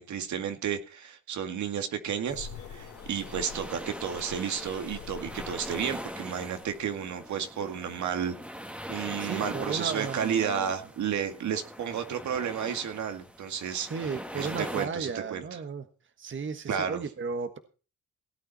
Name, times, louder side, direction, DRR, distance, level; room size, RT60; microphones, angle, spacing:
voice 1, 0.0-8.3 8.9-15.6 16.7-17.0, right 8 dB, 70° right, 7 dB, 2.3 m, -32 dB
sound 1, 2.3-7.3, left 7 dB, 70° left, 3.4 m, -46 dB
sound 2, 2.3-14.9, equal, 5° right, 1.9 m, -42 dB
voice 2, 9.2-10.7 13.9-15.8 16.2-17.6, right 5 dB, 40° right, 9 dB, 1.4 m, -34 dB
17.5 x 9.0 x 4.2 m, 0.36 s
cardioid pair, 90°, 30 cm